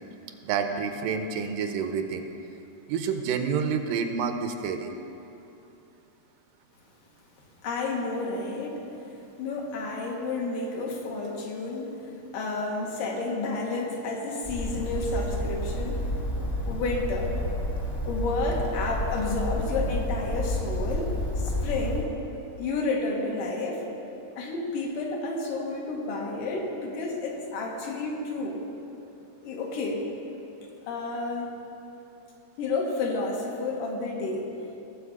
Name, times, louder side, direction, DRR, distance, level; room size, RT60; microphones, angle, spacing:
voice 1, 0.4-2.3 2.9-4.9, right 6 dB, 90° right, 7 dB, 2.4 m, -28 dB
voice 2, 7.6-8.8 9.4-16.0 16.7-17.4 18.0-22.1 22.6-23.8 24.4-28.6 29.4-30.1 30.9-31.5 32.6-34.5, left 3 dB, 85° left, -1 dB, 3.1 m, -31 dB
Bird, 14.4-22.1, left 1 dB, 60° left, 0.6 m, -30 dB
18.5 x 7.5 x 4.8 m, 2.9 s
omnidirectional pair, 3.7 m